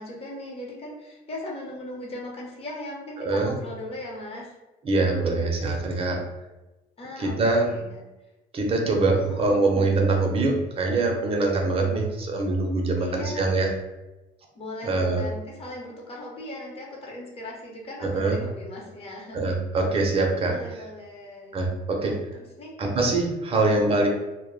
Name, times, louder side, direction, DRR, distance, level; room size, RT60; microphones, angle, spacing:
voice 1, 0.0-4.5 7.0-8.0 9.1-10.0 13.0-13.5 14.5-19.6 20.5-21.6 22.0-22.7 23.5-24.1, left 1 dB, 35° left, -3 dB, 0.8 m, -38 dB
voice 2, 3.2-3.5 4.8-6.2 7.2-7.7 8.5-13.7 14.8-15.2 18.0-18.4 19.3-20.6 21.5-22.2 22.8-24.1, right 3 dB, 35° right, 1 dB, 0.6 m, -23 dB
2.1 x 2.0 x 3.1 m, 1.0 s
cardioid pair, 110°, 17 cm